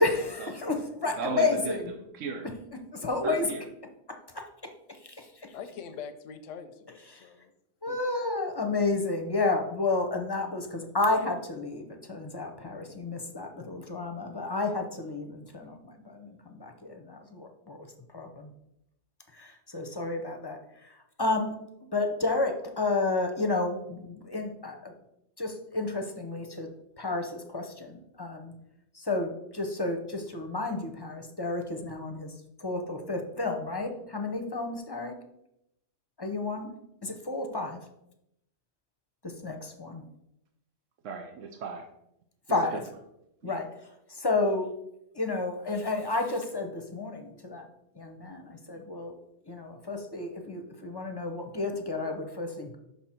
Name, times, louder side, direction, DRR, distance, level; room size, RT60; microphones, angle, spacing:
voice 1, 0.0-1.9 2.9-3.5 4.1-4.7 5.0-5.5 7.0-7.3 7.8-17.9 18.1-18.5 19.3-21.5 21.9-24.9 25.4-26.7 27.0-28.5 28.9-35.1 36.2-36.7 37.0-37.8 39.2-40.0 42.5-42.8 43.4-44.7 45.1-47.7 47.9-49.2 49.5-52.8, left 3 dB, 25° left, 4 dB, 0.6 m, -31 dB
voice 2, 1.0-1.8 2.1-2.5 3.2-3.6 41.0-41.9 42.5-42.8 43.4-43.5, right 5 dB, 90° right, 4 dB, 1.1 m, -36 dB
voice 3, 5.5-7.5 7.9-8.0, left 7 dB, 85° left, 9 dB, 1.0 m, -43 dB
5.9 x 5.5 x 4.4 m, 0.82 s
omnidirectional pair, 1.3 m